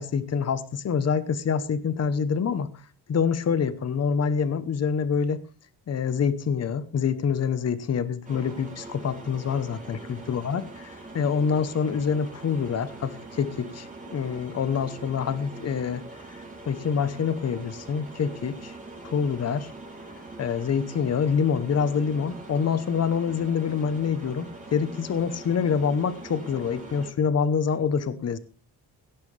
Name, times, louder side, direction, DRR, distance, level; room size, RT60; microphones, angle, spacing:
voice 1, 0.0-2.7 3.1-5.4 5.9-16.0 16.7-18.7 19.0-19.7 20.4-28.4, left 6 dB, 40° left, 0.9 m, -26 dB
sound 1, 8.2-27.1, right 2 dB, 20° right, 3.3 m, -43 dB
17.0 x 10.5 x 3.4 m
wide cardioid pair, 170°, 39 cm